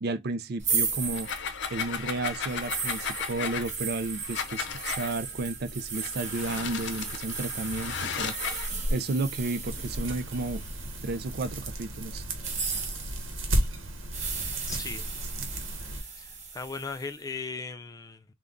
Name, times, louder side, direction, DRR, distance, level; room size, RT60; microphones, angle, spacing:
voice 1, 0.0-1.3 1.7-8.4 8.9-10.6 11.0-12.2, right 2 dB, 55° right, 0.5 m, -32 dB
sound 1, 0.6-11.6 12.3-17.2, right 4 dB, 35° right, 1.0 m, -35 dB
sound 2, 1.1-5.1 5.9-8.7, left 6 dB, 60° left, 0.6 m, -35 dB
sound 3, 9.6-16.0, right 1 dB, 80° right, 1.0 m, -34 dB
voice 2, 14.7-15.2 15.9-18.3, left 4 dB, 20° left, 0.3 m, -38 dB
3.6 x 2.3 x 3.8 m
head